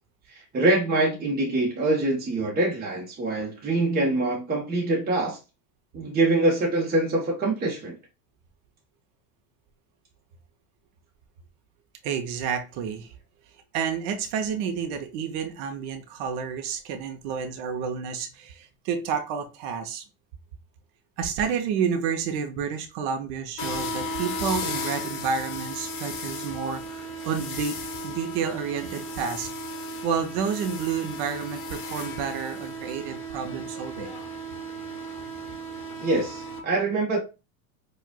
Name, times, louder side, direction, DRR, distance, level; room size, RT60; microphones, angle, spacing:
voice 1, 0.3-5.4 5.9-8.0 36.0-37.2, right 2 dB, 20° right, 1.0 m, -24 dB
voice 2, 12.0-13.2 13.7-20.0 21.2-27.8 28.0-29.5 30.0-34.1, right 6 dB, 65° right, 0.8 m, -30 dB
sound 1, 23.6-36.6, equal, 40° left, 1.0 m, -35 dB
4.7 x 2.4 x 2.3 m
supercardioid pair, 115°, 44 cm